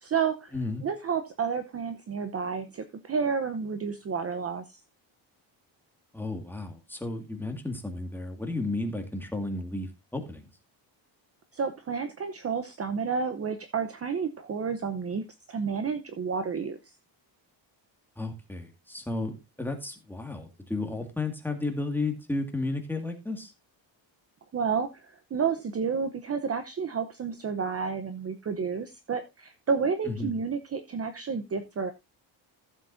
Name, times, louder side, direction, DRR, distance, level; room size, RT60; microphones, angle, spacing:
voice 1, 0.0-0.5 0.8-4.8 11.5-15.2 15.5-16.8 24.5-31.9, right 6 dB, 30° right, 9 dB, 0.8 m, -30 dB
voice 2, 0.5-0.8 6.1-10.5 18.2-23.5 30.1-30.3, left 2 dB, 5° left, 4 dB, 1.9 m, -33 dB
15.0 x 7.5 x 2.6 m, 0.23 s
cardioid pair, 130°, 46 cm